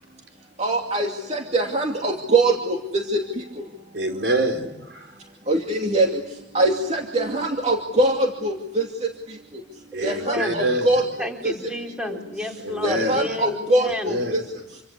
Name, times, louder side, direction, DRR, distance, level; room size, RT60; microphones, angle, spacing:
voice 1, 0.6-3.2 5.5-6.1 6.5-8.8 10.0-11.0 11.4-11.5 12.8-14.4, right 2 dB, 40° right, 2 dB, 2.5 m, -22 dB
voice 2, 3.9-5.2 9.9-11.1 12.6-13.4 13.8-14.4, right 1 dB, 85° right, 4 dB, 4.5 m, -26 dB
voice 3, 9.9-10.7 11.2-14.2, left 1 dB, 5° right, 2 dB, 4.1 m, -31 dB
28.0 x 25.0 x 8.3 m, 0.88 s
head